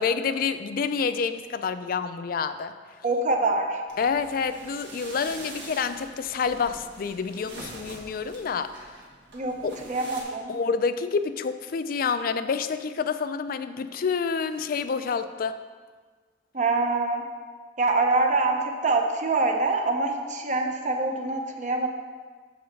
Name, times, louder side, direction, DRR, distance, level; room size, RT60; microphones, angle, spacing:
voice 1, 0.0-2.7 4.0-8.7 9.6-9.8 10.5-15.6, left 5 dB, 55° left, 11 dB, 0.4 m, -28 dB
voice 2, 3.0-3.8 9.3-9.6 9.9-10.5 16.5-17.2 17.8-21.9, right 3 dB, 45° right, 3 dB, 0.8 m, -25 dB
sound 1, 3.9-10.2, right 2 dB, 75° right, 1.5 m, -44 dB
7.0 x 4.1 x 6.5 m, 1.5 s
head